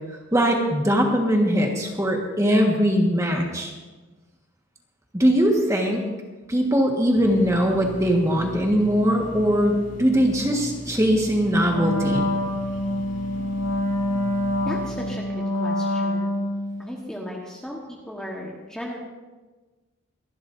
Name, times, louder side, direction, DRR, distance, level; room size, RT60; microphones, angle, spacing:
voice 1, 0.3-3.7 5.1-6.0 6.5-12.3, equal, 15° right, 1 dB, 1.5 m, -21 dB
sound 1, 7.2-15.2, equal, 35° left, 2.0 m, -38 dB
Wind instrument woodwind instrument, 11.7-16.8, left 1 dB, 65° left, 2.0 m, -26 dB
voice 2, 14.6-16.4 16.8-19.0, equal, 5° left, -2 dB, 1.3 m, -36 dB
25.5 x 11.5 x 2.7 m, 1.3 s
head